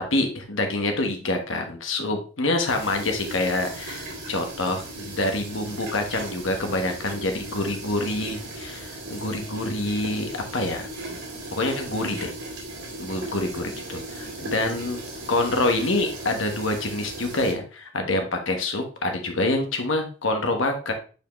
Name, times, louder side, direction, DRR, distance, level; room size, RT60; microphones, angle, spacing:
voice 1, 0.1-10.9 11.5-12.3 13.0-15.0 15.3-20.9, left 2 dB, 75° left, 4 dB, 1.3 m, -26 dB
sound 1, 2.7-17.5, right 2 dB, 55° right, 2.5 m, -37 dB
7.0 x 5.0 x 3.1 m, 0.37 s
head